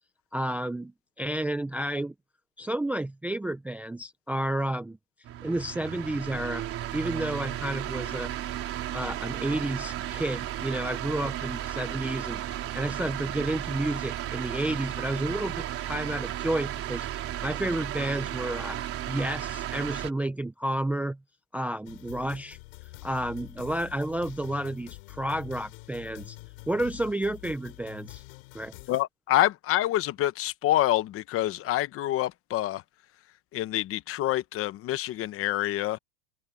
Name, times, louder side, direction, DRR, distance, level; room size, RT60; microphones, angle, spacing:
voice 1, 0.3-2.1 2.6-5.0 5.4-6.7 6.9-8.3 8.9-17.1 17.4-18.8 19.1-21.2 21.5-22.6 23.0-26.4 26.7-28.2 28.5-28.7, right 1 dB, 5° right, 0.6 m, -31 dB
sound 1, 5.2-20.1, right 12 dB, 30° right, 3.7 m, -34 dB
sound 2, 21.8-29.0, left 26 dB, 60° left, 6.0 m, -46 dB
voice 2, 28.9-32.8 33.5-36.0, left 14 dB, 30° left, 1.1 m, -27 dB
supercardioid pair, 145°, 43 cm